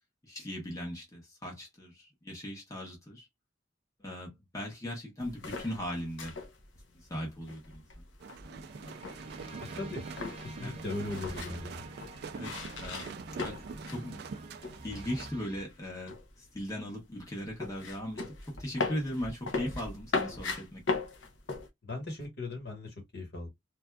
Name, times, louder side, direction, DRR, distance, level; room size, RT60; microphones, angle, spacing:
voice 1, 0.2-3.3 4.0-6.4 7.1-7.8 10.6-10.8 12.3-13.1 13.4-14.2 14.8-21.0, equal, 15° left, 1.0 m, -39 dB
sound 1, 5.2-14.1 14.3-15.2 15.5-21.7, left 3 dB, 80° left, 0.8 m, -38 dB
sound 2, 8.2-15.3, right 5 dB, 55° right, 0.3 m, -45 dB
sound 3, 8.4-15.6, right 1 dB, 30° right, 0.8 m, -48 dB
voice 2, 9.6-10.0 10.4-11.8 21.8-23.5, left 2 dB, 55° left, 1.4 m, -38 dB
3.3 x 2.6 x 2.3 m
head